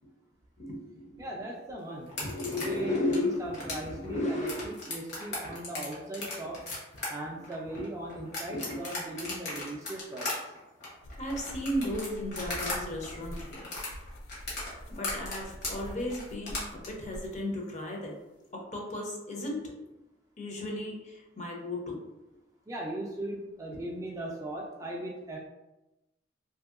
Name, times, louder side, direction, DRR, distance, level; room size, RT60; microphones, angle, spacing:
voice 1, 0.6-1.5 2.2-4.9 5.5-5.6 7.3-7.4 7.7-7.8 8.2-8.9 9.2-9.6 11.2-13.7 14.9-18.2 18.5-19.6 20.4-22.0 23.7-23.9, left 1 dB, 35° left, 0 dB, 0.6 m, -35 dB
voice 2, 1.2-2.2 2.6-6.7 7.1-10.5 22.7-25.4, right 1 dB, 15° right, -2 dB, 0.3 m, -38 dB
sound 1, 2.1-12.8 13.0-16.9, left 2 dB, 60° left, 1.1 m, -37 dB
sound 2, 11.0-17.4, equal, 90° left, 0.4 m, -45 dB
2.9 x 2.7 x 2.4 m, 0.96 s
head